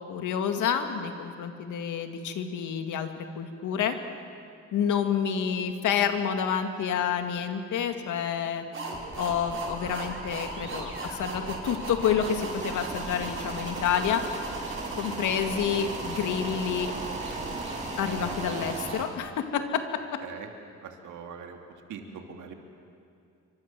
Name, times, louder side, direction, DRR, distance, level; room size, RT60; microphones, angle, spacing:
voice 1, 0.1-3.1 3.4-4.0 4.7-8.6 9.2-14.2 15.0-16.9 18.0-19.8, left 8 dB, 80° left, 6 dB, 2.3 m, -28 dB
sound 1, 8.7-19.0, right 2 dB, 40° right, 6.8 m, -36 dB
sound 2, 12.2-18.9, right 2 dB, 25° right, 3.0 m, -40 dB
voice 2, 20.8-21.6 21.9-22.5, right 7 dB, 75° right, 3 dB, 2.8 m, -42 dB
27.5 x 24.5 x 7.7 m, 2.5 s
cardioid pair, 90°, 30 cm